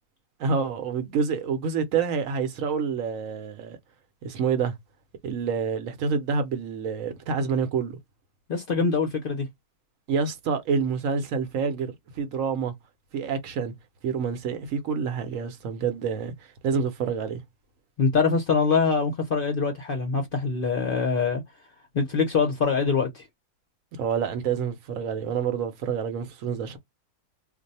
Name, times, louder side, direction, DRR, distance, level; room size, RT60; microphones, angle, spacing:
voice 1, 0.4-3.8 4.2-4.7 5.2-8.0 10.1-12.7 13.1-13.7 14.0-17.4 24.0-26.8, right 6 dB, 70° right, 1.0 m, -27 dB
voice 2, 8.5-9.5 18.0-21.4 21.9-23.2, left 5 dB, 50° left, 0.7 m, -24 dB
2.6 x 2.1 x 4.0 m
omnidirectional pair, 1.5 m